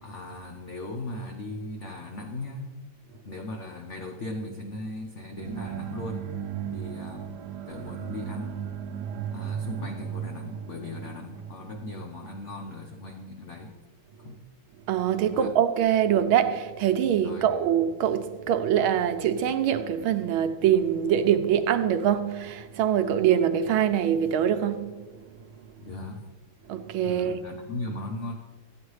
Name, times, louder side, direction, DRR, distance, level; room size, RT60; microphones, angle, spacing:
voice 1, 0.0-2.7 3.2-6.3 6.7-7.3 7.7-8.6 9.3-13.7 14.2-14.4 15.3-15.5 17.2-17.7 25.8-26.3 27.0-28.3, left 2 dB, 55° left, 2 dB, 0.8 m, -38 dB
sound 1, 5.4-13.1, right 9 dB, 70° right, 1.1 m, -36 dB
voice 2, 14.9-25.0 26.7-27.5, right 9 dB, 90° right, 9 dB, 1.5 m, -24 dB
14.0 x 9.1 x 3.2 m, 1.4 s
omnidirectional pair, 2.2 m